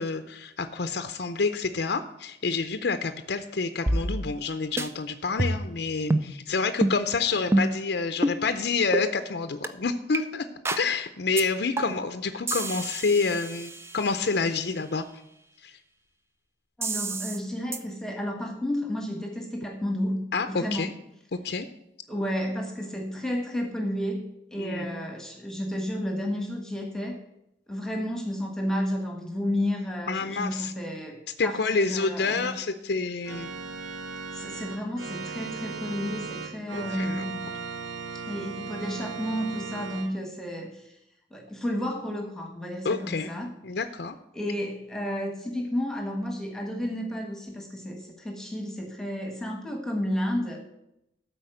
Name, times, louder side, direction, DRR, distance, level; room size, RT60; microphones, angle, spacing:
voice 1, 0.0-10.5 10.8-15.0 15.6-15.7 20.3-20.9 21.3-21.7 24.6-24.9 30.1-30.7 31.4-33.5 36.7-37.4 42.8-43.3 43.6-44.1, left 4 dB, 60° left, 9 dB, 0.6 m, -28 dB
sound 1, 3.9-4.5 4.8-4.9 5.4-5.8 6.1-6.3 6.8-7.0 7.5-7.8 8.2-8.4 8.9-9.1 9.6-9.7 10.1-10.2 10.7-10.9 11.4-11.5 11.8-12.1 12.5-14.3 16.8-17.4 17.7-17.8, right 1 dB, 15° right, 0.5 m, -28 dB
voice 2, 16.8-20.9 22.1-24.2 24.5-27.2 27.7-32.6 34.3-37.4 38.1-41.0 41.3-43.5 44.3-50.7, equal, 5° left, 2 dB, 1.4 m, -32 dB
Organ, 33.2-40.1, right 4 dB, 85° right, 1.5 m, -37 dB
12.5 x 4.6 x 7.8 m, 0.83 s
head